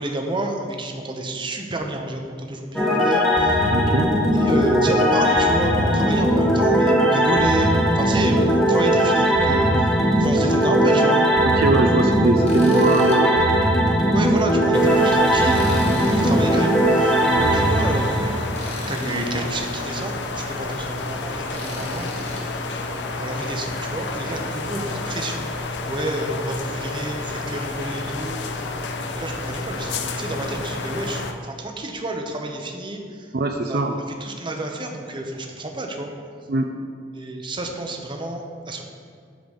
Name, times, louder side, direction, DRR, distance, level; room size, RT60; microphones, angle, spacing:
voice 1, 0.0-3.5 4.3-9.9 10.2-11.2 14.1-17.2 17.5-18.4 18.9-22.1 23.2-25.5 25.9-28.4 29.1-33.3 33.6-33.8 34.2-36.1 37.1-38.8, right 1 dB, 30° right, 3 dB, 0.8 m, -29 dB
sound 1, 2.7-18.8, right 1 dB, 5° left, 1.2 m, -19 dB
voice 2, 3.7-4.1 11.4-13.5 17.3-17.6 33.3-34.0 36.5-36.7, right 2 dB, 60° right, 4 dB, 0.5 m, -22 dB
Tools, 12.4-13.2 13.6-13.7 15.5-16.6 18.5-19.3 21.5-22.4, left 2 dB, 40° left, 1.4 m, -37 dB
sound 2, 14.7-31.3, left 3 dB, 80° left, 0.7 m, -30 dB
8.1 x 4.0 x 6.9 m, 2.2 s
head